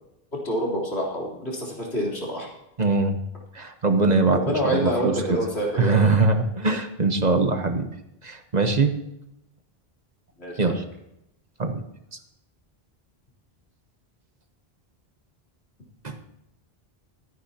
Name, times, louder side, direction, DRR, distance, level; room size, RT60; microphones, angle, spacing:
voice 1, 0.3-2.5 4.3-6.0 10.4-10.7, equal, 90° left, -4 dB, 3.9 m, -27 dB
voice 2, 2.8-3.2 3.5-5.1 5.8-7.9 8.2-8.9 10.6-10.8 11.6-11.8 16.0-16.2, right 3 dB, 45° right, 6 dB, 1.1 m, -22 dB
24.5 x 9.5 x 2.9 m, 0.85 s
omnidirectional pair, 1.1 m